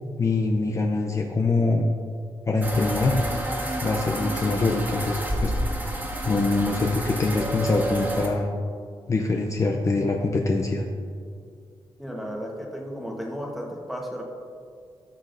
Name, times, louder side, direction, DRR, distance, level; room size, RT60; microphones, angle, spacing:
voice 1, 0.2-1.9 2.5-3.2 3.8-5.5 6.2-8.5 9.1-10.8, left 3 dB, 30° left, 2 dB, 0.5 m, -24 dB
sound 1, 2.6-8.3, right 1 dB, 20° right, 1.4 m, -29 dB
voice 2, 12.0-14.2, equal, ahead, -1 dB, 1.2 m, -34 dB
14.0 x 6.3 x 2.6 m, 2.2 s
wide cardioid pair, 120°, 10 cm